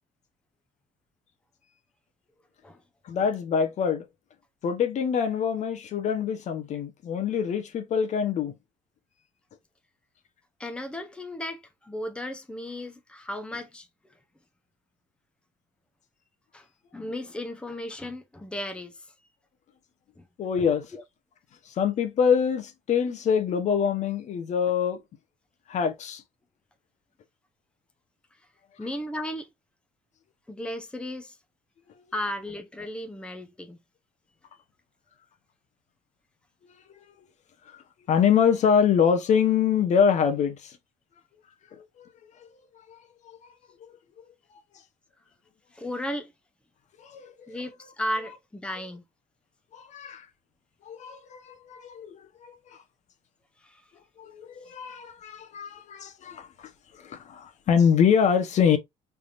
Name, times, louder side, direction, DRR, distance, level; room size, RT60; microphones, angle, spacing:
voice 1, 3.0-4.1 4.6-8.6 20.4-20.9 21.7-25.0 25.7-26.2 37.7-37.8 38.1-40.8 41.7-42.1 42.4-42.5 42.9-43.0 43.2-43.4 43.8-43.9 47.0-47.5 49.7-50.3 50.8-52.8 54.2-58.8, left 7 dB, 50° left, 0.9 m, -25 dB
voice 2, 10.6-13.9 16.5-16.7 16.9-19.1 20.2-20.3 20.9-21.0 28.8-29.5 30.5-31.4 32.1-33.8 45.7-46.3 47.5-49.0 53.6-53.8, left 1 dB, 5° left, 0.8 m, -35 dB
4.7 x 3.4 x 2.5 m
cardioid pair, 105°, 15 cm